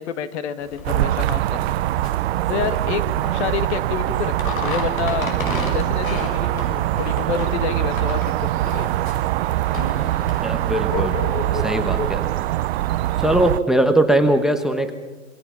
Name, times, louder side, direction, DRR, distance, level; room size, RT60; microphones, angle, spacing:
voice 1, 0.0-1.8 2.5-3.0 3.3-5.3 5.7-8.9, left 8 dB, 55° left, 11 dB, 2.0 m, -28 dB
sound 1, 0.6-10.8, left 3 dB, 85° left, 6.1 m, -34 dB
sound 2, 0.8-13.6, right 15 dB, 50° right, 0.6 m, -23 dB
sound 3, 8.5-13.6, left 5 dB, 20° left, 1.5 m, -33 dB
voice 2, 10.4-11.1 11.6-12.3 13.2-14.9, right 1 dB, ahead, 9 dB, 1.0 m, -20 dB
27.5 x 21.5 x 5.8 m, 1.2 s
hypercardioid pair, 135°, 40 cm